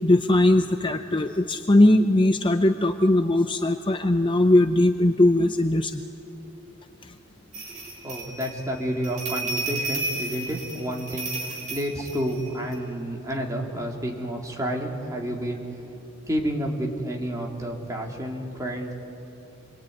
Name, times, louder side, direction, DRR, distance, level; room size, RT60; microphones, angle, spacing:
voice 1, 0.0-6.0 7.0-7.1, left 1 dB, 25° left, 7 dB, 0.7 m, -20 dB
sound 1, 7.5-12.7, right 2 dB, 35° right, 5.1 m, -33 dB
voice 2, 7.7-15.6 16.3-18.9, equal, 15° right, -1 dB, 3.2 m, -30 dB
28.0 x 22.0 x 9.6 m, 2.9 s
head